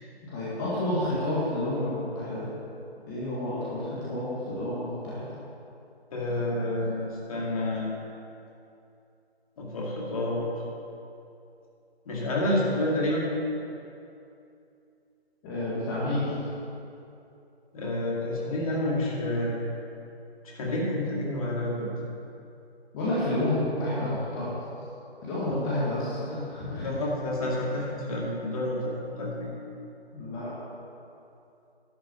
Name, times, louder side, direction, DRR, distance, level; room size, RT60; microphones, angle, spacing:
voice 1, 0.2-2.5 3.1-5.3 15.4-16.4 22.9-24.6 25.2-26.9 27.5-27.6 30.1-30.5, left 1 dB, 20° left, -9 dB, 1.9 m, -30 dB
voice 2, 6.1-7.9 9.6-10.4 12.1-13.3 17.7-19.6 20.6-21.9 25.5-25.7 26.3-26.5 26.8-29.5, left 1 dB, 35° left, -3 dB, 2.3 m, -29 dB
11.5 x 6.3 x 8.7 m, 2.7 s
figure-of-eight pair, 150°, 32 cm